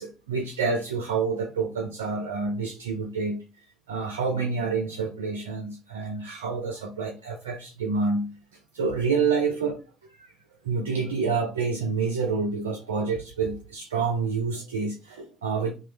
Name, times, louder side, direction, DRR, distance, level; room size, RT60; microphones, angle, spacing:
voice 1, 0.0-3.4 3.9-8.3 8.7-9.8 10.1-10.3 10.6-15.8, right 4 dB, 85° right, 0.3 m, -28 dB
2.9 x 2.1 x 3.1 m
hypercardioid pair, 55°, 0 cm